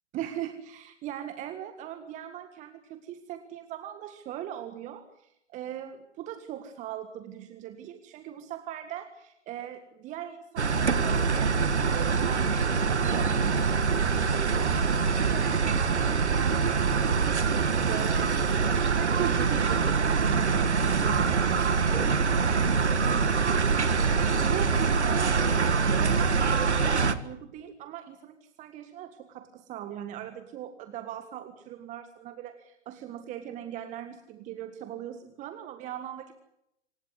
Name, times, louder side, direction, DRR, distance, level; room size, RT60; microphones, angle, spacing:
voice 1, 0.1-23.9 24.4-36.3, right 11 dB, 20° right, 9 dB, 1.7 m, -40 dB
sound 1, 10.6-27.2, right 5 dB, 75° right, 1.9 m, -24 dB
27.0 x 16.5 x 9.6 m, 0.81 s
figure-of-eight pair, 120°, 34 cm